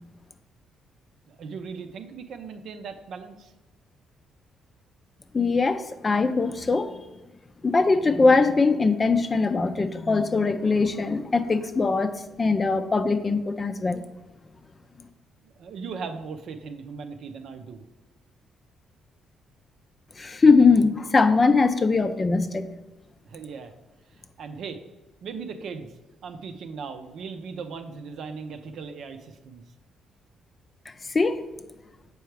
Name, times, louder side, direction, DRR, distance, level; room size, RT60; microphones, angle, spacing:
voice 1, 1.3-3.5 15.4-17.8 23.2-23.7 24.1-24.8 25.2-25.9 26.2-29.6, right 5 dB, 70° right, 7 dB, 0.6 m, -38 dB
voice 2, 5.3-7.0 7.6-14.0 20.2-22.7 31.1-31.4, left 4 dB, 30° left, 9 dB, 0.5 m, -21 dB
7.0 x 4.6 x 3.3 m, 1.1 s
cardioid pair, 90°, 0 cm